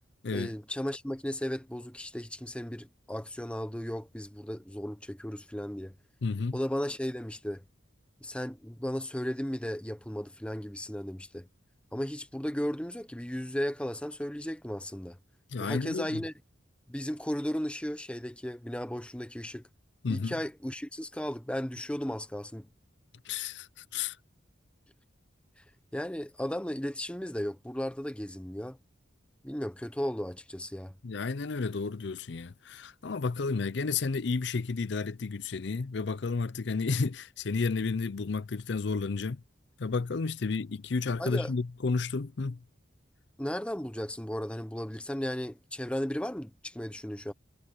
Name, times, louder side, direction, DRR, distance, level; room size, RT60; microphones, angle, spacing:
voice 1, 0.3-5.9 6.5-7.6 8.2-11.5 11.9-15.2 15.6-16.3 16.9-19.6 20.1-22.7 25.9-28.8 29.4-30.9 41.2-41.5 43.4-47.3, equal, 5° left, 0.9 m, -35 dB
voice 2, 6.2-6.6 15.5-16.2 20.0-20.4 23.2-24.2 31.0-39.4 39.8-42.6, left 4 dB, 60° left, 0.5 m, -32 dB
head